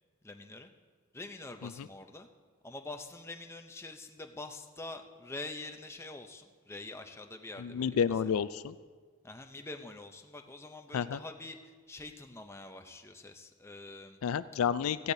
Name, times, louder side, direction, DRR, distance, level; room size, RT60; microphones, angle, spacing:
voice 1, 0.2-0.7 1.1-2.3 2.6-8.0 9.2-14.2, left 2 dB, 10° left, 5 dB, 0.6 m, -45 dB
voice 2, 7.6-8.7 10.9-11.2 14.2-15.1, left 7 dB, 75° left, 15 dB, 0.3 m, -30 dB
17.0 x 15.0 x 2.7 m, 1.5 s
head